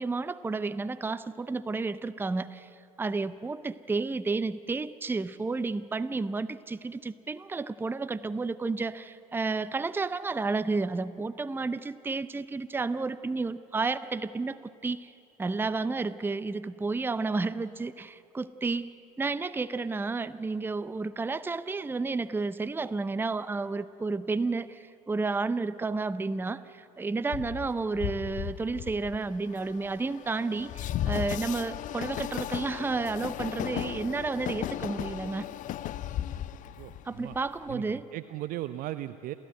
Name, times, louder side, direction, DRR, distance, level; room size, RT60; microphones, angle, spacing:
voice 1, 0.0-2.7 3.0-15.1 15.4-35.5 37.0-38.1, right 3 dB, 10° right, 14 dB, 0.6 m, -31 dB
Train, 27.3-37.7, left 12 dB, 45° left, 0.7 m, -36 dB
voice 2, 36.8-37.3 37.7-37.8 38.1-39.3, right 15 dB, 50° right, 12 dB, 0.6 m, -37 dB
28.5 x 13.5 x 7.9 m, 2.6 s
hypercardioid pair, 70°, 19 cm